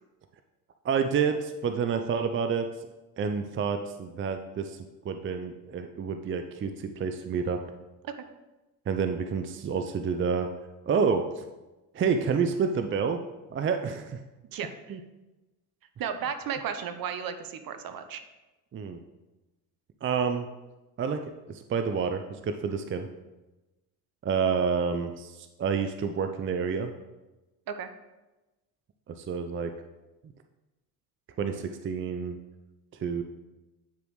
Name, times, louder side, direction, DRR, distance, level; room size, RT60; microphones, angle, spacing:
voice 1, 0.8-2.7 3.2-4.8 5.0-7.6 8.9-10.5 10.9-11.5 11.9-13.2 13.5-14.2 14.9-15.0 18.7-19.0 20.0-20.5 21.0-21.2 21.5-23.1 24.2-26.9 29.1-29.7 31.4-32.4 33.0-33.2, right 6 dB, 30° right, 7 dB, 0.5 m, -28 dB
voice 2, 14.5-15.0 16.0-18.2 27.7-27.9, right 7 dB, 50° right, 9 dB, 0.8 m, -34 dB
9.0 x 4.9 x 3.2 m, 1.1 s
hypercardioid pair, 60°, 44 cm